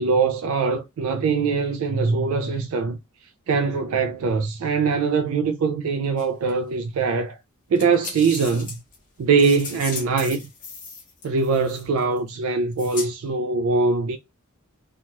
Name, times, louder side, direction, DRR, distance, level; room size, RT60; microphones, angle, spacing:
voice 1, 0.0-3.0 3.5-7.4 7.7-8.8 9.2-10.5 11.2-14.2, right 4 dB, 70° right, 0.3 m, -22 dB
sound 1, 6.2-6.5 7.7-12.2 12.8-13.1, left 4 dB, 40° left, 1.1 m, -36 dB
2.8 x 2.3 x 2.8 m
head